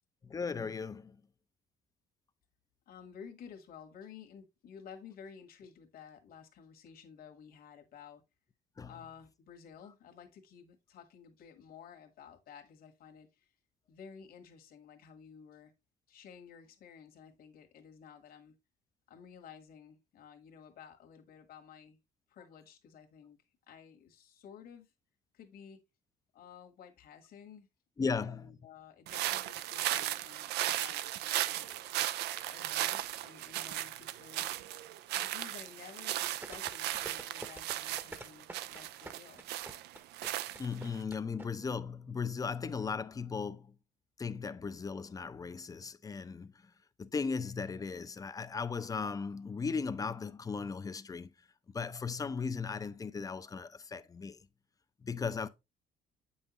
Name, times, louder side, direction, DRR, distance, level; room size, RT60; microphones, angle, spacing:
voice 1, 0.2-1.2 8.8-8.9 28.0-28.6 40.6-43.7 44.2-46.7 47.0-51.3 51.7-54.4 55.0-55.5, left 5 dB, 20° left, 0.5 m, -37 dB
voice 2, 2.9-8.2 8.8-13.5 13.9-15.7 16.1-18.5 19.1-22.0 22.3-23.4 23.7-24.9 25.3-25.8 26.3-27.7 28.0-31.8 32.5-39.5, left 7 dB, 60° left, 1.5 m, -53 dB
sound 1, 29.1-41.0, right 14 dB, 80° right, 0.5 m, -36 dB
sound 2, 36.4-41.5 41.7-41.8, right 2 dB, 10° right, 0.9 m, -46 dB
7.8 x 5.6 x 2.9 m
cardioid pair, 110°, 17 cm